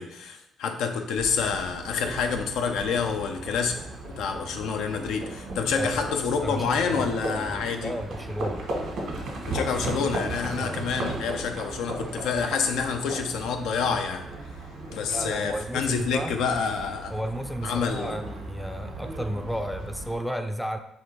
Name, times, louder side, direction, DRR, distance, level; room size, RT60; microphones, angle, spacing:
voice 1, 0.0-3.8 4.0-7.9 9.5-14.2 14.9-17.1 17.6-18.2, left 6 dB, 90° left, 5 dB, 0.5 m, -28 dB
Livestock farm animals working animals, 1.2-20.2, right 2 dB, 75° right, 1.4 m, -36 dB
voice 2, 6.4-7.6 7.8-8.6 10.6-10.8 15.1-16.4 17.1-20.8, equal, 5° left, 7 dB, 0.4 m, -33 dB
4.2 x 2.5 x 4.4 m, 0.84 s
cardioid pair, 90°, 0 cm